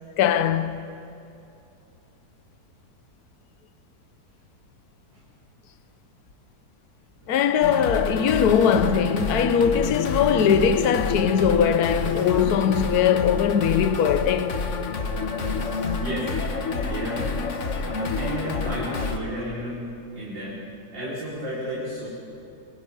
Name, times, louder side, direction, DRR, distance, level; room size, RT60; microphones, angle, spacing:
voice 1, 0.2-0.8 7.3-14.5, left 8 dB, 60° left, 1.4 m, -21 dB
sound 1, 7.6-19.2, left 4 dB, 45° left, 1.5 m, -28 dB
voice 2, 16.0-16.3 16.8-17.3 17.8-19.8 20.1-20.6 20.9-22.1, equal, 85° right, 5.6 m, -32 dB
27.0 x 24.0 x 5.5 m
omnidirectional pair, 1.9 m